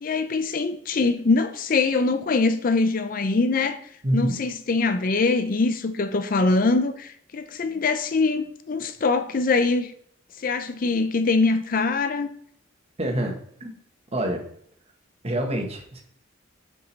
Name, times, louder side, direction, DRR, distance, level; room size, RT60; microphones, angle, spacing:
voice 1, 0.0-3.8 4.1-9.9 10.4-12.3, left 3 dB, 45° left, 0.5 m, -23 dB
voice 2, 4.0-4.4 13.0-13.8 14.1-14.4 15.2-16.0, right 1 dB, 35° right, 1.3 m, -26 dB
7.2 x 5.1 x 4.0 m
head